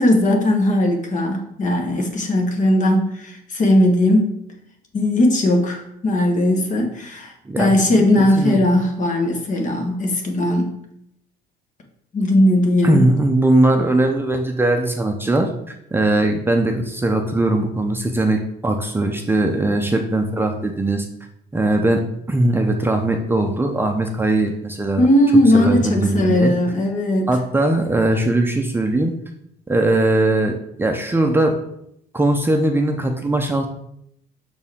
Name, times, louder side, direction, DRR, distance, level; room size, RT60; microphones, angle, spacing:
voice 1, 0.0-4.3 4.9-10.7 12.1-13.1 25.0-27.4, left 1 dB, 50° left, 3 dB, 1.3 m, -18 dB
voice 2, 7.5-8.6 12.8-21.1 21.5-25.1 25.5-26.5 27.3-29.1 29.7-31.6 32.1-33.7, right 2 dB, 15° right, 3 dB, 0.6 m, -20 dB
6.0 x 4.4 x 3.6 m, 0.75 s
cardioid pair, 110°, 17 cm